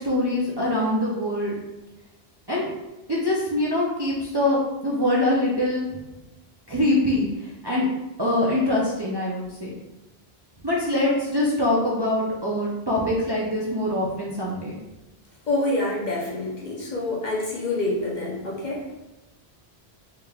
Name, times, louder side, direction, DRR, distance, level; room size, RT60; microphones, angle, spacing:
voice 1, 0.0-1.5 2.5-2.7 3.1-6.0 6.7-7.9 8.2-9.7 10.6-14.8, left 1 dB, 35° right, -6 dB, 0.4 m, -24 dB
voice 2, 15.5-19.0, left 2 dB, 50° left, -3 dB, 0.7 m, -27 dB
3.5 x 3.2 x 2.3 m, 1.0 s
omnidirectional pair, 1.1 m